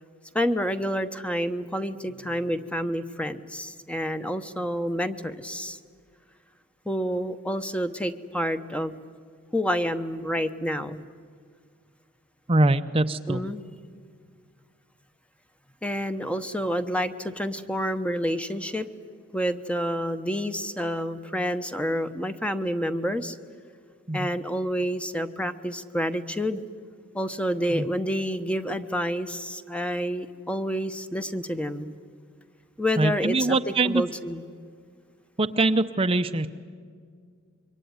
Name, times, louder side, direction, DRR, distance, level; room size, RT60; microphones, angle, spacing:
voice 1, 0.3-5.8 6.9-9.0 9.5-11.0 13.3-13.6 15.8-18.9 19.3-23.4 24.1-26.6 27.1-32.0 32.8-34.4, equal, 5° left, 9 dB, 0.9 m, -28 dB
voice 2, 12.5-13.4 24.1-24.3 27.7-27.9 33.0-34.0 35.4-36.5, right 2 dB, 30° right, 8 dB, 0.7 m, -23 dB
26.0 x 23.5 x 9.5 m, 2.1 s
head